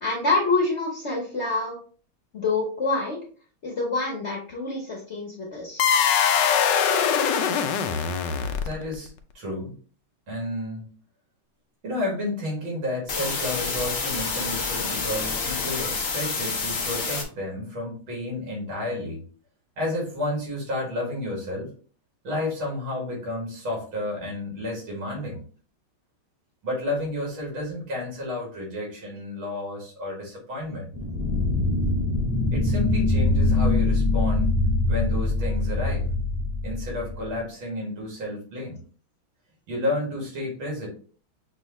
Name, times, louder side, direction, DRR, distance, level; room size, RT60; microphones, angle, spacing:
voice 1, 0.0-1.8 2.3-3.2 3.6-5.9, left 3 dB, 45° left, -2 dB, 0.9 m, -26 dB
sound 1, 5.8-8.9, left 7 dB, 75° left, 1.1 m, -22 dB
voice 2, 8.6-9.7 10.3-10.9 11.8-19.2 19.8-21.7 22.2-25.4 26.6-30.9 32.5-34.6 34.9-36.1 36.6-38.8 39.7-40.9, left 1 dB, 75° right, -2 dB, 2.7 m, -31 dB
sound 2, 13.1-17.2, left 4 dB, 90° left, 0.5 m, -28 dB
sound 3, 30.9-37.4, left 2 dB, 10° right, 1.1 m, -23 dB
6.1 x 2.4 x 3.0 m, 0.41 s
omnidirectional pair, 2.3 m